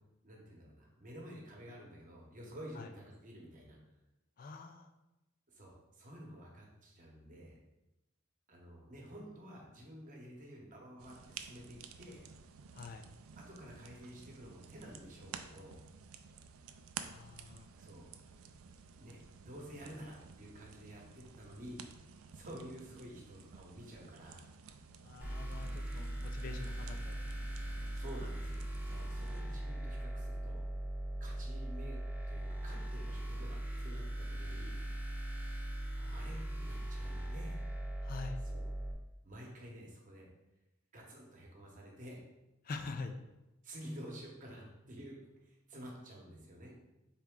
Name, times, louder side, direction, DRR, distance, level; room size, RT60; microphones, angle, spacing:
voice 1, 0.2-3.8 5.5-7.6 8.5-12.2 13.4-15.8 17.7-18.1 19.0-21.8 22.1-24.5 25.6-25.8 27.7-30.6 31.2-32.0 32.3-34.8 36.1-37.6 38.4-38.6 39.2-40.3 40.9-42.2 43.6-46.7, equal, 40° right, -1 dB, 1.0 m, -51 dB
voice 2, 4.4-4.9 12.7-13.1 17.0-17.7 25.0-27.9 36.0-36.2 38.0-38.4 42.6-43.2, left 4 dB, 45° left, 6 dB, 0.4 m, -46 dB
sound 1, 11.0-29.4, right 6 dB, 85° right, 0.4 m, -53 dB
sound 2, 25.2-38.9, right 1 dB, 10° right, 0.6 m, -40 dB
4.2 x 3.5 x 3.6 m, 0.96 s
head